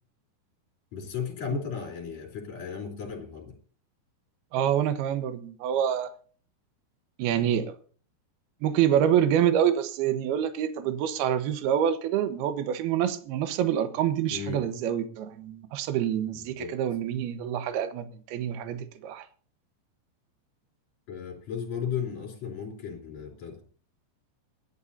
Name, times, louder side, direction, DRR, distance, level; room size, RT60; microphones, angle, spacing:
voice 1, 0.9-3.5 14.3-14.6 16.6-16.7 21.1-23.6, left 7 dB, 40° left, 4.6 m, -35 dB
voice 2, 4.5-6.1 7.2-7.7 8.6-19.2, right 10 dB, 70° right, 2.9 m, -26 dB
27.5 x 11.0 x 2.8 m
omnidirectional pair, 5.1 m